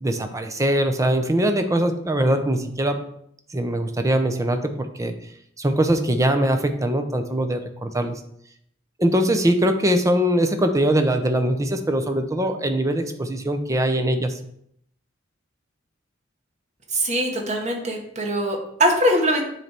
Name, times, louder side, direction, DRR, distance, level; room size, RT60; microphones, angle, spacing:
voice 1, 0.0-3.0 3.5-5.1 5.6-8.2 9.0-14.4, right 1 dB, 15° right, 7 dB, 0.6 m, -22 dB
voice 2, 16.9-19.4, equal, 40° right, 1 dB, 1.3 m, -22 dB
9.3 x 3.3 x 4.4 m, 0.72 s
head